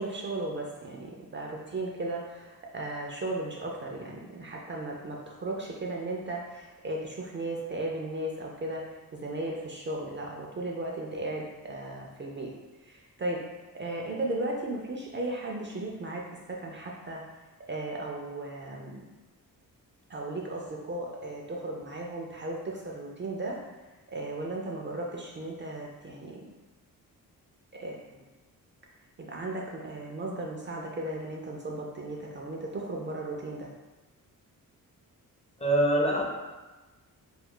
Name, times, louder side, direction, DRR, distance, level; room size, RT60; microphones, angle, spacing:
voice 1, 0.0-8.8 9.1-12.5 12.8-13.4 13.7-17.2 17.7-19.1 20.1-23.6 24.1-26.5 27.7-28.0 29.2-33.7, right 2 dB, 35° right, -1 dB, 0.4 m, -36 dB
voice 2, 35.6-36.2, right 1 dB, 20° left, -2 dB, 0.5 m, -23 dB
2.3 x 2.3 x 3.6 m, 1.2 s
cardioid pair, 95°, 36 cm